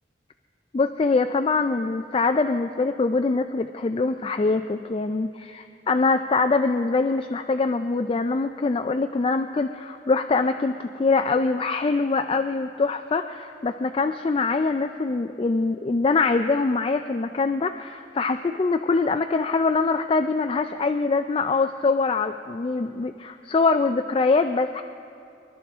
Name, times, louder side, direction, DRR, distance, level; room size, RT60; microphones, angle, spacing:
voice 1, 0.7-24.8, left 3 dB, 30° left, 7 dB, 0.3 m, -23 dB
25.0 x 12.0 x 3.5 m, 2.6 s
head